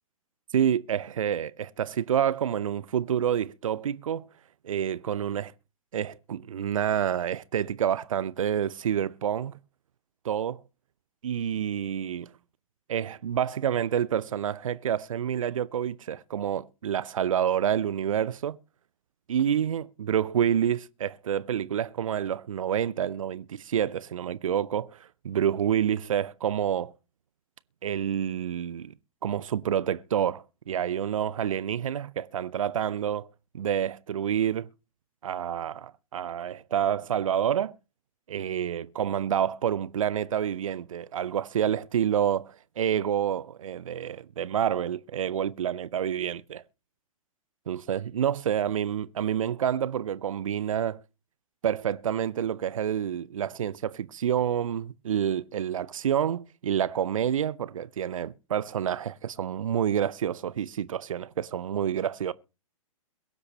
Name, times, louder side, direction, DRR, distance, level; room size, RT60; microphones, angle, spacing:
voice 1, 0.5-4.3 4.6-5.5 5.9-9.6 10.2-10.6 11.2-12.3 12.9-18.6 19.3-26.9 27.8-28.9 29.2-33.3 33.5-34.7 35.2-37.7 38.3-46.6 47.7-51.0 51.6-62.3, right 9 dB, 65° right, 0.6 m, -28 dB
22.5 x 7.9 x 2.9 m
figure-of-eight pair, 115°, 19 cm